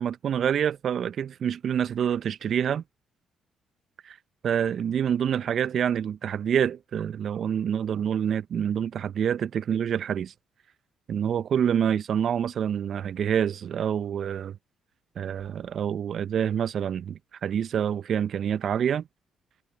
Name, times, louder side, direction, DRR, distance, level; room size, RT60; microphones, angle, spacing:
voice 1, 0.0-2.8 4.0-4.2 4.4-10.3 11.1-14.6 15.2-19.1, right 8 dB, 55° right, 0.9 m, -27 dB
hypercardioid pair, 45°, 0 cm